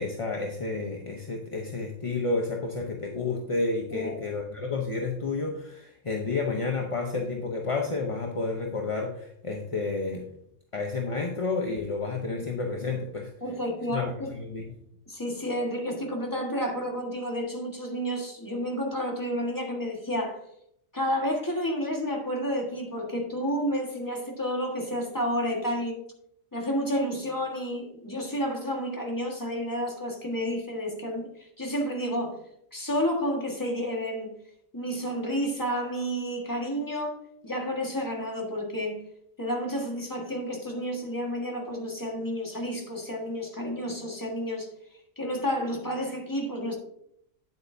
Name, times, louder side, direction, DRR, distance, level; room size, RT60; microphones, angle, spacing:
voice 1, 0.0-10.3 10.7-13.3 13.9-14.7, left 3 dB, 30° left, 1 dB, 0.7 m, -30 dB
voice 2, 13.4-14.3 15.1-20.4 20.9-26.0 26.5-32.4 32.7-34.3 34.7-37.2 37.4-39.0 39.4-44.7 45.2-46.8, equal, 15° left, 0 dB, 1.6 m, -30 dB
9.3 x 7.9 x 2.7 m, 0.73 s
omnidirectional pair, 1.4 m